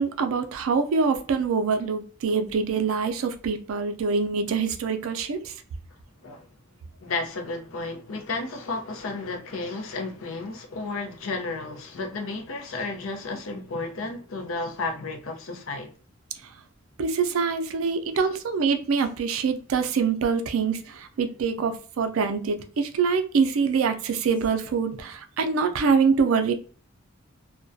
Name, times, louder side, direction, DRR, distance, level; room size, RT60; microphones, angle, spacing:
voice 1, 0.0-5.5 17.0-26.5, right 5 dB, 85° right, 0.4 m, -25 dB
voice 2, 7.0-15.9, left 3 dB, 75° left, 0.6 m, -32 dB
2.3 x 2.2 x 2.5 m
head